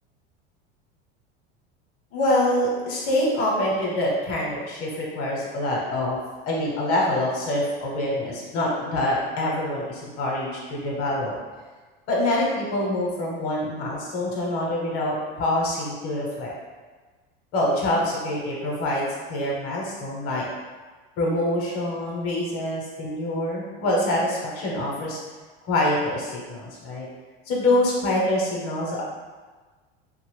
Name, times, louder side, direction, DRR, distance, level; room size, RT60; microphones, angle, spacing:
voice 1, 2.1-6.2 6.4-11.4 12.1-16.5 17.5-20.5 21.2-25.2 25.6-27.0 27.5-29.0, left 1 dB, 50° left, -3 dB, 1.0 m, -25 dB
2.8 x 2.4 x 3.3 m, 1.4 s
supercardioid pair, 115°, 30 cm